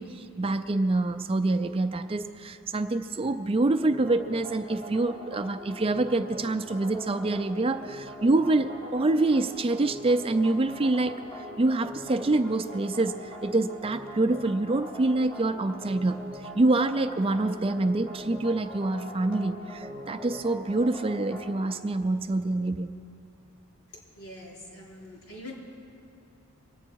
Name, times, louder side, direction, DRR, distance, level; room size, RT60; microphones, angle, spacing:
voice 1, 0.0-22.9, right 2 dB, 25° right, 9 dB, 0.4 m, -26 dB
sound 1, 3.8-21.7, equal, 5° left, 3.8 m, -42 dB
voice 2, 24.2-25.5, left 1 dB, 85° left, -3 dB, 3.8 m, -44 dB
24.0 x 8.7 x 4.6 m, 2.6 s
head